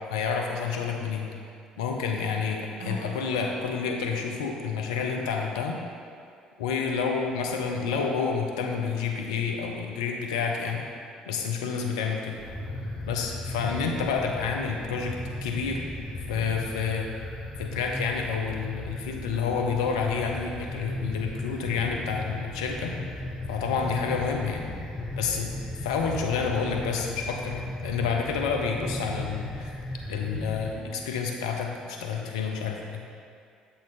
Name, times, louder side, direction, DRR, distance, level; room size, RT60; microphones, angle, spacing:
voice 1, 0.1-1.3 1.8-5.8 6.6-10.8 11.3-12.4 13.1-15.8 16.3-17.1 17.6-22.9 23.5-24.6 25.2-25.5 25.8-29.7 30.1-33.0, left 5 dB, 80° left, 2 dB, 0.6 m, -29 dB
Acoustic guitar / Strum, 2.8-6.1, right 1 dB, 55° right, 1.2 m, -44 dB
sound 1, 12.3-30.7, left 1 dB, 15° left, 1.4 m, -36 dB
7.3 x 3.9 x 4.1 m, 2.4 s
hypercardioid pair, 55°, 3 cm